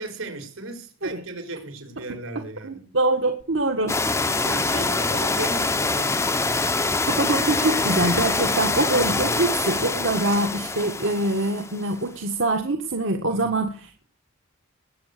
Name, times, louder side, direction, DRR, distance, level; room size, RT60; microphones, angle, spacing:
voice 1, 0.0-2.9 4.4-6.4 9.0-9.5 13.3-13.5, right 2 dB, 85° right, 4.6 m, -36 dB
voice 2, 2.6-4.5 7.1-14.0, right 2 dB, 65° right, 1.6 m, -24 dB
sound 1, 3.4-10.7, left 7 dB, 80° left, 1.7 m, -40 dB
sound 2, 3.9-11.9, left 3 dB, 15° left, 0.8 m, -25 dB
20.5 x 8.3 x 6.8 m
head